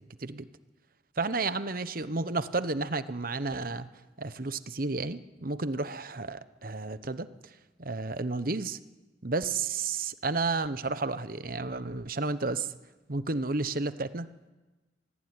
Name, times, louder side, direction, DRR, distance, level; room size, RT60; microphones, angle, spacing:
voice 1, 1.2-3.9 4.2-7.5 7.8-8.8 9.2-12.7 13.1-14.3, right 3 dB, 50° right, 13 dB, 1.0 m, -32 dB
26.0 x 19.0 x 9.7 m, 1.2 s
head